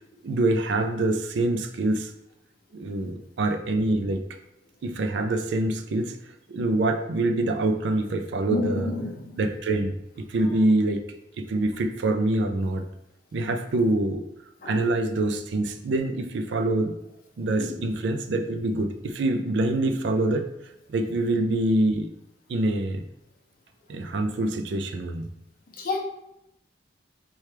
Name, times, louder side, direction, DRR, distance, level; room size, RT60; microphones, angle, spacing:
voice 1, 0.2-2.1 2.7-4.2 4.8-6.2 6.5-8.9 9.4-11.0 11.4-12.8 13.3-14.2 14.6-16.9 17.4-20.5 20.9-22.1 22.5-23.0 23.9-25.3, right 2 dB, 70° right, 6 dB, 0.4 m, -25 dB
voice 2, 8.5-9.4 10.4-10.5 14.6-14.8 17.6-17.9 25.8-26.0, left 3 dB, 50° left, 0 dB, 0.6 m, -30 dB
4.4 x 2.3 x 3.2 m, 0.82 s
head